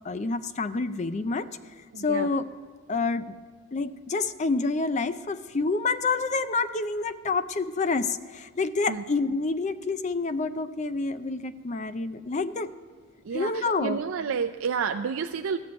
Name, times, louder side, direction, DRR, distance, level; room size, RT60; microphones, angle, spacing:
voice 1, 0.0-1.5 2.0-2.5 2.9-3.3 3.7-12.7 13.3-14.0, left 3 dB, 35° left, 13 dB, 0.4 m, -28 dB
voice 2, 1.9-2.3 8.9-9.0 13.2-15.6, right 6 dB, 80° right, 7 dB, 0.4 m, -30 dB
14.0 x 6.9 x 9.3 m, 1.6 s
head